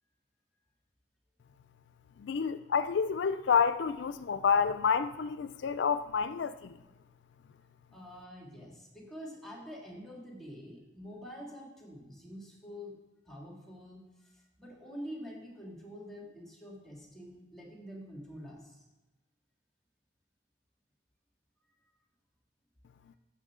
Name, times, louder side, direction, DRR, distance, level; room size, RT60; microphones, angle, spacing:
voice 1, 2.2-6.8, left 6 dB, 75° left, 13 dB, 0.4 m, -29 dB
voice 2, 7.9-13.0 13.3-18.8, equal, ahead, -2 dB, 2.4 m, -46 dB
13.0 x 7.8 x 3.7 m, 1.1 s
head